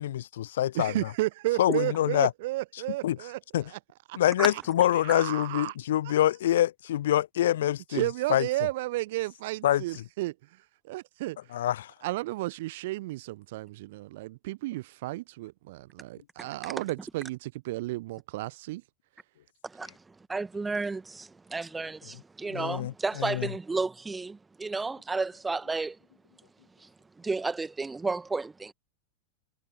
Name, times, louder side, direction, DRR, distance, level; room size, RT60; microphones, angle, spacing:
voice 1, 0.0-0.9 1.6-2.3 3.0-3.2 3.5-3.6 4.2-8.5 9.6-9.8 11.5-11.9 22.5-22.9 23.2-23.5, left 12 dB, 60° left, 0.5 m, -25 dB
voice 2, 0.7-3.8 4.1-4.2 4.5-4.6 5.0-5.7 6.0-6.1 7.9-10.3 10.8-11.4 12.0-18.8, right 18 dB, 50° right, 1.0 m, -33 dB
voice 3, 16.4-16.7 19.6-26.0 26.8-26.9 27.2-28.7, right 3 dB, 10° right, 2.0 m, -32 dB
figure-of-eight pair, 90°, 0 cm